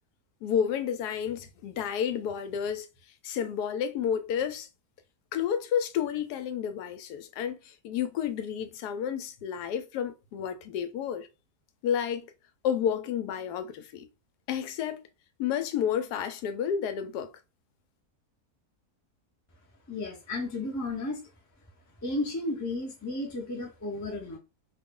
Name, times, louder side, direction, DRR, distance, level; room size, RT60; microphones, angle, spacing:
voice 1, 0.4-2.9 3.2-4.7 5.3-11.3 11.8-12.3 12.6-14.1 14.5-15.0 15.4-17.3, left 8 dB, 90° left, 1.1 m, -30 dB
voice 2, 19.9-21.2 22.0-24.4, left 2 dB, 25° left, 0.3 m, -33 dB
2.5 x 2.3 x 3.6 m
omnidirectional pair, 1.6 m